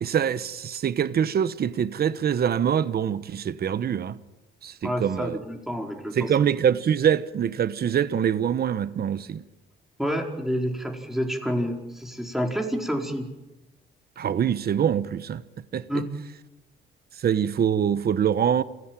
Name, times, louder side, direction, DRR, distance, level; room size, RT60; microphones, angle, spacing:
voice 1, 0.0-4.2 4.6-5.4 6.1-9.4 14.2-15.4 15.7-16.0 17.1-18.6, right 8 dB, 50° right, 1.1 m, -24 dB
voice 2, 4.8-6.3 10.0-13.3 15.9-16.0, equal, ahead, 4.8 m, -28 dB
27.5 x 17.5 x 9.1 m
cardioid pair, 90°, 20 cm